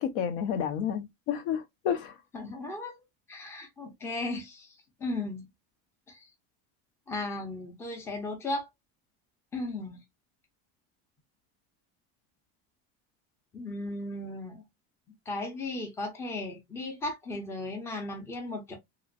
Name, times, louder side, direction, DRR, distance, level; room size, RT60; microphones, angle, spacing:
voice 1, 0.0-2.1, left 8 dB, 80° left, 0.7 m, -30 dB
voice 2, 2.3-3.0 3.3-5.5 6.1-6.3 7.1-8.7 9.5-10.0 13.5-14.6 15.3-18.8, left 2 dB, 10° left, 0.5 m, -36 dB
2.9 x 2.5 x 2.5 m
cardioid pair, 175°, 33 cm